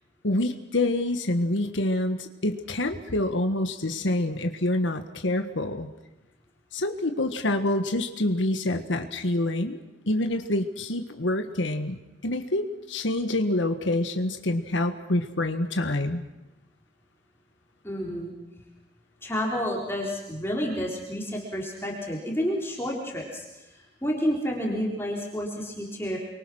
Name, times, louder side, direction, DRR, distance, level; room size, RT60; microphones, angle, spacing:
voice 1, 0.2-5.9 6.7-12.0 12.2-16.2, left 1 dB, 80° left, 7 dB, 1.5 m, -27 dB
voice 2, 17.8-18.3 19.2-23.5 23.7-26.2, equal, 15° left, -2 dB, 3.8 m, -30 dB
30.0 x 23.5 x 6.3 m, 0.99 s
head